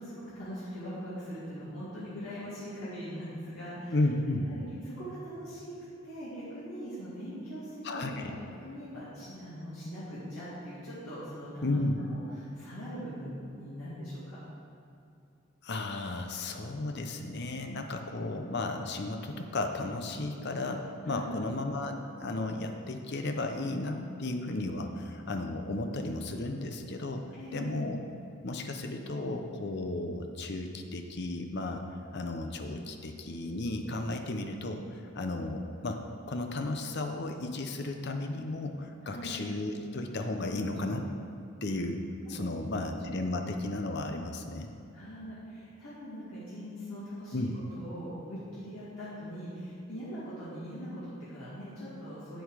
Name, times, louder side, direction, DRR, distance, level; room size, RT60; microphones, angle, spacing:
voice 1, 0.0-4.0 4.4-5.7 6.0-8.3 8.6-11.8 12.1-14.4 21.0-21.3 27.3-27.8 39.0-39.4 42.2-43.0 44.9-47.4 47.7-52.4, equal, 90° left, -11 dB, 2.4 m, -41 dB
voice 2, 3.9-4.5 7.8-8.3 11.6-12.0 15.6-27.2 27.5-28.0 28.4-31.8 32.1-36.0 36.3-41.2 41.6-42.0 42.3-44.7 47.3-47.5, left 2 dB, 50° left, 5 dB, 0.7 m, -34 dB
8.6 x 7.9 x 4.9 m, 2.7 s
head